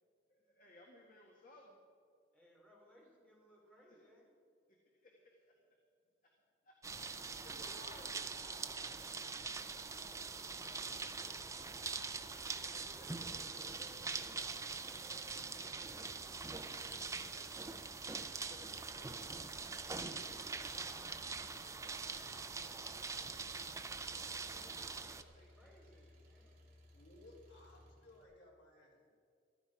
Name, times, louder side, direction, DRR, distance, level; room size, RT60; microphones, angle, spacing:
voice 1, 0.3-1.8 5.0-5.4 6.6-6.7 7.4-8.8 17.7-18.6 24.5-25.7, left 1 dB, 45° left, -1 dB, 1.7 m, -61 dB
voice 2, 2.3-4.4 9.5-12.0 12.6-17.8 19.5-23.4 24.4-26.7, equal, 5° left, -4 dB, 3.8 m, -64 dB
sound 1, 6.8-25.2, right 4 dB, 15° right, 0.5 m, -43 dB
Engine, 10.7-28.2, equal, 50° right, 2.8 m, -64 dB
voice 3, 26.9-28.9, left 1 dB, 70° left, -3 dB, 3.5 m, -60 dB
14.5 x 13.5 x 5.0 m, 2.3 s
head